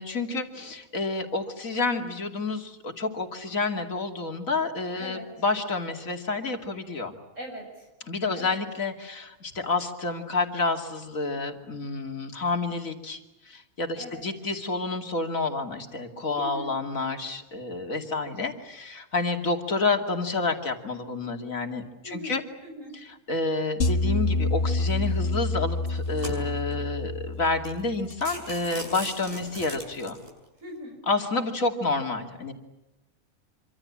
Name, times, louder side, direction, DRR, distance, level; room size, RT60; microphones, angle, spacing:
voice 1, 0.0-7.1 8.1-22.4 23.0-30.2 31.1-32.5, left 3 dB, 70° left, 4 dB, 3.0 m, -29 dB
voice 2, 7.4-7.9 8.3-8.6 14.0-14.2 16.3-16.7 22.0-23.0 30.6-31.0, equal, 60° right, 1 dB, 6.0 m, -40 dB
sound 1, 23.8-28.1, left 2 dB, 50° left, 1.7 m, -27 dB
sound 2, 24.9-25.2 25.8-26.7 27.3-27.4 27.7-27.8 28.1-30.3, right 1 dB, 40° right, 7.6 m, -39 dB
26.5 x 25.5 x 8.7 m, 1.0 s
omnidirectional pair, 1.5 m